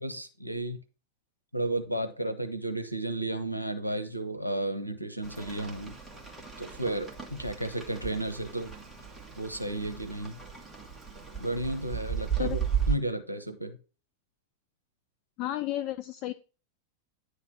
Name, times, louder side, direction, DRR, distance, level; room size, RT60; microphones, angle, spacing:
voice 1, 0.0-0.8 1.5-6.0 6.6-8.7 9.4-10.4 11.4-12.6 12.9-13.8, right 1 dB, 90° right, 12 dB, 0.7 m, -33 dB
Rain, 5.2-13.0, right 8 dB, 5° right, 1.7 m, -35 dB
voice 2, 15.4-16.3, left 14 dB, 40° left, 11 dB, 0.4 m, -32 dB
9.8 x 3.3 x 5.6 m, 0.35 s
figure-of-eight pair, 90°, 0 cm